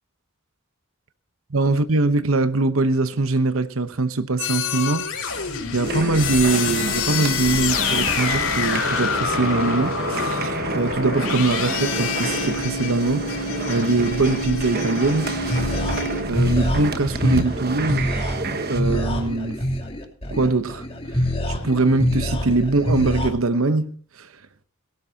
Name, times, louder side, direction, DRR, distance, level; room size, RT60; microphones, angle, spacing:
voice 1, 1.5-15.9 16.2-18.1 18.7-19.6 20.3-20.9 21.6-24.3, right 3 dB, 70° right, 0.9 m, -22 dB
sound 1, 4.4-16.2, left 5 dB, 75° left, 4.8 m, -27 dB
sound 2, 5.8-18.8, right 3 dB, 45° right, 1.2 m, -29 dB
sound 3, 15.1-23.3, equal, 25° left, 3.1 m, -26 dB
18.0 x 17.5 x 2.8 m
head